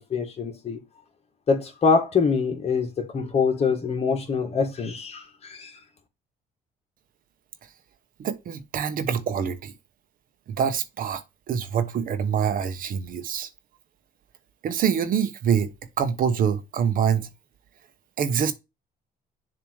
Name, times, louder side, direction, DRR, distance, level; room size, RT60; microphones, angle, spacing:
voice 1, 0.1-0.8 1.5-5.7, left 5 dB, 40° left, 1.9 m, -24 dB
voice 2, 8.2-9.7 10.6-11.2 11.5-13.5 14.6-15.7 16.0-17.3 18.2-18.5, right 7 dB, 55° right, 1.1 m, -25 dB
7.1 x 3.0 x 4.7 m
cardioid pair, 110°, 17 cm